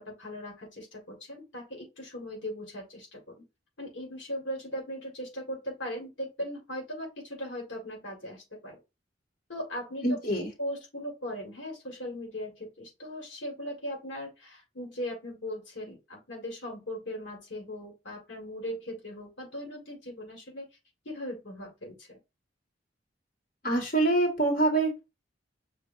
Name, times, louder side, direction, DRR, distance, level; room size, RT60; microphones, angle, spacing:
voice 1, 0.0-3.3 3.8-8.8 9.5-20.6 21.0-22.2, equal, 80° left, 0 dB, 1.7 m, -39 dB
voice 2, 10.0-10.5 23.6-25.1, right 2 dB, 50° left, -1 dB, 2.0 m, -25 dB
7.3 x 2.7 x 2.5 m, 0.25 s
head